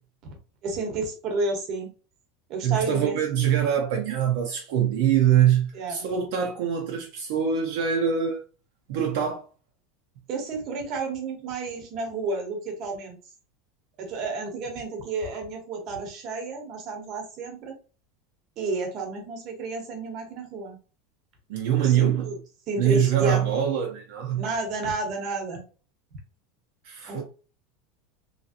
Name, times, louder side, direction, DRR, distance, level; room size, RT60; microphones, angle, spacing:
voice 1, 0.6-1.9 2.5-3.2 5.7-6.1 10.3-13.2 14.0-17.8 18.6-20.8 21.8-22.4 22.7-23.4 24.3-25.6 27.1-27.2, right 3 dB, 35° right, 0.9 m, -31 dB
voice 2, 2.6-8.4 8.9-9.4 21.5-22.4 22.8-24.5 26.8-27.2, right 9 dB, 60° right, 0.6 m, -24 dB
3.0 x 2.7 x 2.4 m
supercardioid pair, 180°, 0 cm